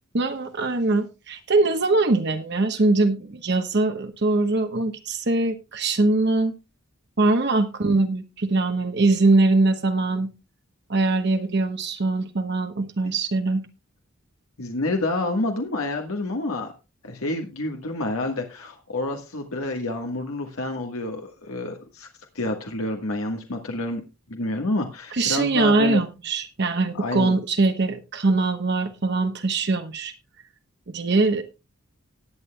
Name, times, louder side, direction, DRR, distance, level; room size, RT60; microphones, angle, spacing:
voice 1, 0.1-6.5 7.2-10.3 10.9-13.6 25.1-30.1 30.9-31.4, right 2 dB, 50° right, 7 dB, 1.0 m, -22 dB
voice 2, 14.6-16.7 17.0-22.1 22.3-24.0 24.3-26.0 26.9-27.3, left 2 dB, 75° left, 3 dB, 1.5 m, -28 dB
18.5 x 8.8 x 2.3 m, 0.28 s
head